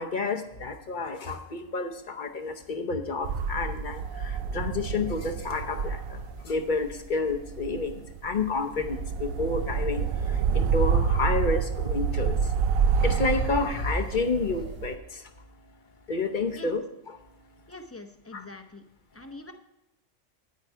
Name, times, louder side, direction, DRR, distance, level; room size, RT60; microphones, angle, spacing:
voice 1, 0.0-12.5 12.8-15.3 16.1-16.8 18.3-18.4, left 3 dB, 45° left, 6 dB, 0.8 m, -30 dB
sound 1, 3.2-15.0, right 6 dB, 90° right, 1.0 m, -28 dB
voice 2, 17.7-18.8 19.1-19.5, left 2 dB, 15° left, 6 dB, 0.6 m, -44 dB
9.4 x 9.3 x 4.6 m, 0.88 s
omnidirectional pair, 1.3 m